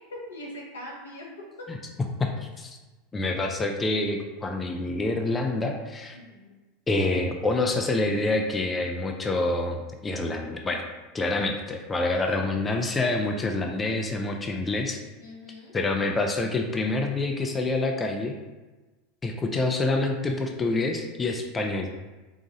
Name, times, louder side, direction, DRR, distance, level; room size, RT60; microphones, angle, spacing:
voice 1, 0.1-1.3 6.1-6.5 12.1-12.5 15.2-15.7, left 1 dB, 90° left, -3 dB, 1.1 m, -42 dB
voice 2, 2.2-2.8 3.1-6.2 6.9-10.8 11.1-15.0 15.7-18.3 19.2-21.9, left 2 dB, 20° left, 3 dB, 0.5 m, -27 dB
4.0 x 2.4 x 4.0 m, 1.2 s
hypercardioid pair, 90°, 0 cm